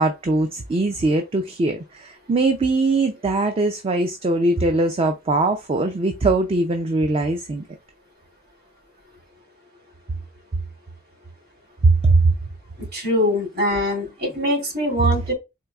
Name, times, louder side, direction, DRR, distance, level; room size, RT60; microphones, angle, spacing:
voice 1, 0.0-7.6 11.8-12.3, right 2 dB, 30° right, 0.4 m, -21 dB
voice 2, 12.9-15.3, left 1 dB, 55° right, 2.4 m, -23 dB
4.4 x 2.6 x 2.3 m
head